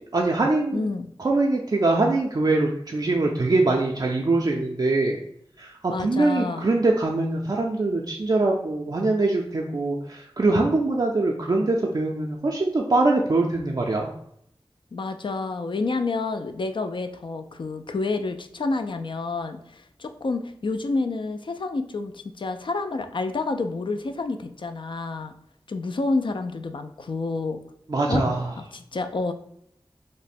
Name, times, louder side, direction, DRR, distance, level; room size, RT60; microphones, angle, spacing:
voice 1, 0.0-0.9 1.2-5.2 5.6-14.1 27.9-28.5, right 2 dB, 45° right, -1 dB, 0.4 m, -23 dB
voice 2, 0.7-1.1 5.9-6.7 14.9-25.3 25.7-27.6 28.1-28.2 28.7-29.3, left 3 dB, 55° left, 7 dB, 0.4 m, -29 dB
3.1 x 2.1 x 4.1 m, 0.72 s
wide cardioid pair, 50°, 10 cm